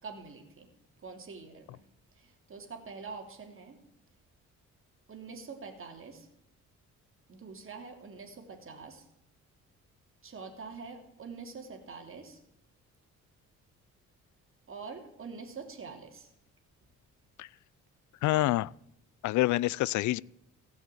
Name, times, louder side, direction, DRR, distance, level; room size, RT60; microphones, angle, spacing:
voice 1, 0.0-0.7 1.0-1.9 2.1-3.8 5.1-6.3 7.3-9.0 10.2-12.4 14.7-16.3, right 4 dB, 45° right, 3.1 m, -45 dB
voice 2, 18.2-18.7 19.2-20.2, left 17 dB, 75° left, 0.4 m, -27 dB
16.0 x 6.4 x 9.2 m
cardioid pair, 90°, 30 cm